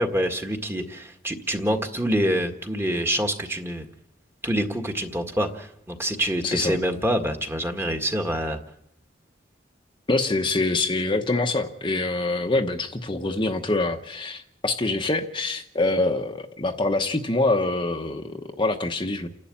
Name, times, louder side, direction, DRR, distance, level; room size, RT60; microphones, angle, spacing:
voice 1, 0.0-3.8 4.4-8.6, equal, 15° right, 4 dB, 1.7 m, -26 dB
voice 2, 6.4-6.8 10.1-19.3, left 2 dB, 25° left, 4 dB, 1.0 m, -25 dB
29.5 x 11.5 x 8.6 m, 0.76 s
head